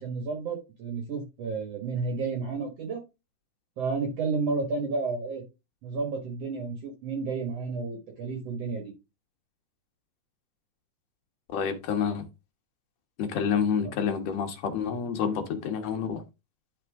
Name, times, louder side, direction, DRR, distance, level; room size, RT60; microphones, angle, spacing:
voice 1, 0.0-3.0 3.8-5.4 5.8-8.9, right 4 dB, 60° right, 2.1 m, -31 dB
voice 2, 11.5-12.2 13.2-16.2, left 7 dB, 65° left, 2.1 m, -28 dB
10.5 x 4.4 x 3.5 m
omnidirectional pair, 3.7 m